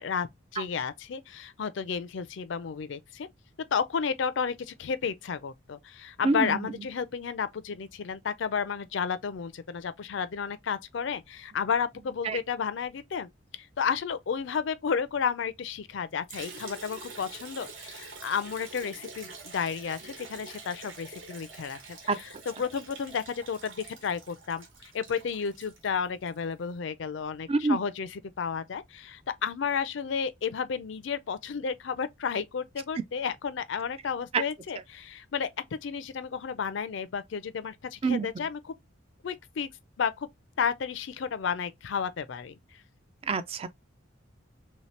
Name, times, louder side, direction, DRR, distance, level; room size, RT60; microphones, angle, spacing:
voice 1, 0.0-3.3 3.7-38.7 39.2-39.7 40.0-40.3 40.6-42.8, left 6 dB, 60° left, 0.4 m, -32 dB
voice 2, 6.2-6.6 12.2-12.4 22.1-22.2 27.5-27.8 34.3-34.4 38.0-38.3 43.3-43.7, right 4 dB, 30° right, 0.3 m, -26 dB
Liquid, 16.3-26.4, right 4 dB, 75° right, 1.2 m, -46 dB
3.1 x 2.9 x 3.1 m
head